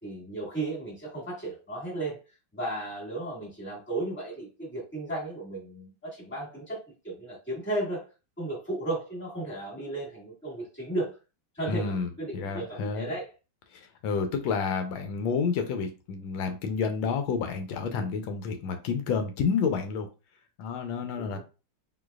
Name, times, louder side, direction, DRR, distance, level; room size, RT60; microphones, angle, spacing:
voice 1, 0.0-2.2 2.5-8.1 8.4-11.1 11.5-13.3 21.1-21.4, right 2 dB, 5° left, -3 dB, 1.4 m, -34 dB
voice 2, 11.7-13.1 13.7-20.1 20.6-21.4, left 5 dB, 85° left, 6 dB, 1.4 m, -30 dB
3.9 x 2.8 x 2.3 m, 0.31 s
omnidirectional pair, 2.1 m